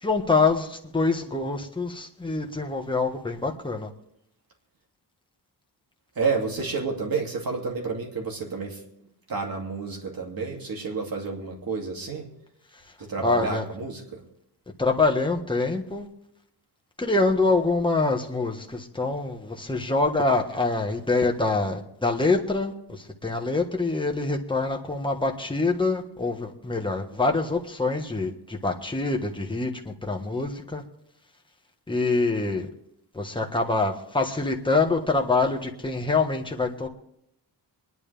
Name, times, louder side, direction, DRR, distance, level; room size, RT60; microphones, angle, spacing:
voice 1, 0.0-3.9 13.2-13.6 14.8-16.1 17.0-30.8 31.9-32.7 33.1-36.9, left 3 dB, 10° left, 2 dB, 1.4 m, -25 dB
voice 2, 6.2-8.8 9.3-12.3 13.0-14.2, right 4 dB, 55° right, 1 dB, 2.7 m, -30 dB
25.5 x 11.0 x 3.4 m, 0.77 s
wide cardioid pair, 155°, 42 cm